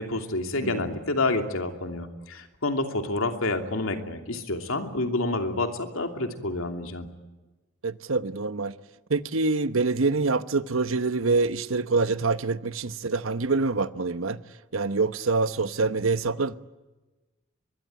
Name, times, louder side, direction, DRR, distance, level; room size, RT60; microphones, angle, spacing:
voice 1, 0.0-7.1, left 2 dB, 90° left, 2.8 m, -28 dB
voice 2, 0.6-0.9 7.8-8.7 9.1-14.4 14.7-16.6, right 3 dB, 85° right, 1.0 m, -25 dB
23.5 x 22.0 x 9.4 m
head